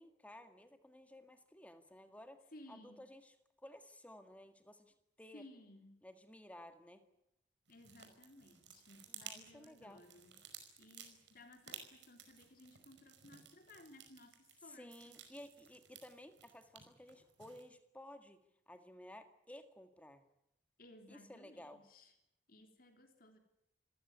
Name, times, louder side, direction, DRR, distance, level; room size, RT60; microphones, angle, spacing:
voice 1, 0.0-3.3 3.6-5.4 6.0-7.0 9.2-10.0 14.6-18.4 18.7-20.2 21.1-21.8, left 1 dB, 10° left, 8 dB, 1.8 m, -55 dB
voice 2, 2.5-3.1 5.3-6.0 7.7-10.4 10.8-15.2 20.8-22.1 22.5-23.4, left 1 dB, 50° left, 5 dB, 3.4 m, -59 dB
sound 1, 7.7-17.6, right 8 dB, 75° right, 5.1 m, -56 dB
27.5 x 15.5 x 9.6 m, 0.83 s
head